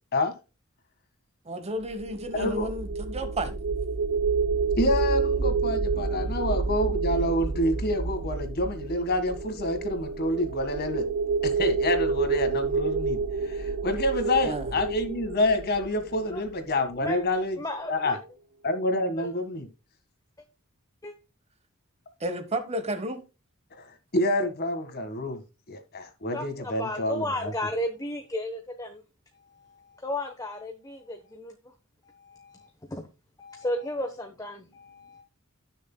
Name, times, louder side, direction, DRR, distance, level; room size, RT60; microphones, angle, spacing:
voice 1, 1.4-3.6 14.4-14.8 22.2-23.2, right 1 dB, 30° right, 1.2 m, -32 dB
sound 1, 1.8-16.9, right 4 dB, 85° right, 0.9 m, -29 dB
voice 2, 2.3-2.7 4.8-11.0 11.4-13.2 13.4-17.6 17.9-18.2 18.6-19.7 23.8-23.9 24.1-25.4 25.7-27.5, left 1 dB, 45° left, 1.8 m, -27 dB
voice 3, 17.6-18.2 19.2-19.3 21.0-21.1 26.3-29.0 29.5-31.7 32.0-33.1 33.4-35.2, left 1 dB, 15° left, 1.0 m, -34 dB
18.0 x 6.5 x 2.3 m
head